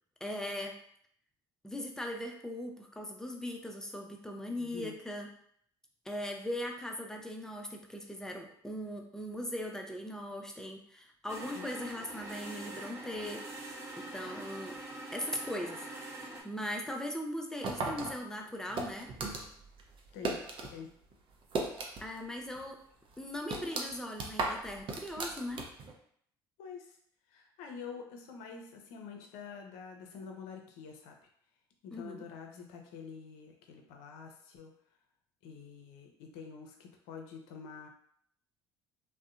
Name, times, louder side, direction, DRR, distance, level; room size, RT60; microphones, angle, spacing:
voice 1, 0.2-0.8 1.6-5.3 6.1-13.5 14.0-14.8 15.1-19.1 22.0-22.8 23.2-25.7 31.9-32.3, left 1 dB, 5° left, 2 dB, 0.4 m, -39 dB
voice 2, 4.6-4.9 11.5-11.7 20.1-20.4 20.7-20.9 26.6-27.0 27.3-31.2 31.8-34.7 35.4-37.9, left 6 dB, 70° left, 2 dB, 0.5 m, -47 dB
sound 1, 11.3-16.4, right 2 dB, 20° right, 0.8 m, -44 dB
sound 2, 17.6-20.7 21.0-22.3 22.6-22.7 23.1-25.9, right 3 dB, 45° right, 0.5 m, -36 dB
2.6 x 2.1 x 2.4 m, 0.65 s
hypercardioid pair, 65°, 12 cm